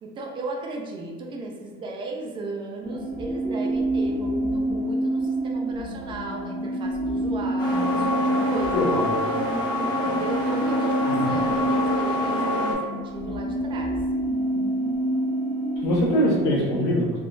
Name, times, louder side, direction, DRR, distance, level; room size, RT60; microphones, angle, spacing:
voice 1, 0.0-8.8 9.5-9.6 10.0-13.9 16.6-16.9, right 2 dB, 25° right, 0 dB, 0.4 m, -36 dB
sound 1, 2.8-16.6, right 1 dB, 75° right, 0.8 m, -27 dB
sound 2, 7.6-12.7, left 1 dB, 25° left, 0.6 m, -26 dB
voice 2, 8.7-9.2 11.1-11.3 15.8-17.1, equal, 70° left, -4 dB, 1.0 m, -23 dB
3.6 x 2.3 x 2.5 m, 1.5 s
cardioid pair, 175°, 19 cm